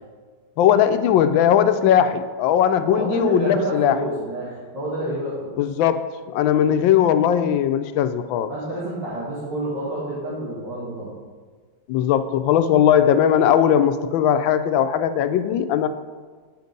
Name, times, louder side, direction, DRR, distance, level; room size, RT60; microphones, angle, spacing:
voice 1, 0.6-4.0 5.6-8.5 11.9-15.9, left 9 dB, 85° left, 11 dB, 1.3 m, -19 dB
voice 2, 2.9-5.6 8.5-11.1, right 1 dB, 70° right, -8 dB, 2.5 m, -28 dB
9.3 x 5.2 x 5.2 m, 1.5 s
omnidirectional pair, 2.0 m